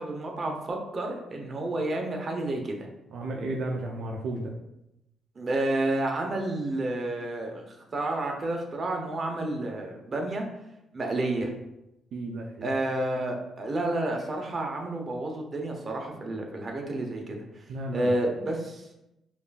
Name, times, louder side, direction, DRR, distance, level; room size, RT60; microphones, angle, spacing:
voice 1, 0.0-2.8 5.4-7.6 7.9-10.5 10.9-11.5 12.6-17.4 17.9-18.9, right 2 dB, 40° right, 1 dB, 0.7 m, -30 dB
voice 2, 3.1-4.5 12.1-12.7 17.7-18.2, right 1 dB, 70° right, 0 dB, 0.4 m, -33 dB
5.2 x 2.5 x 2.3 m, 0.87 s
cardioid pair, 90°, 0 cm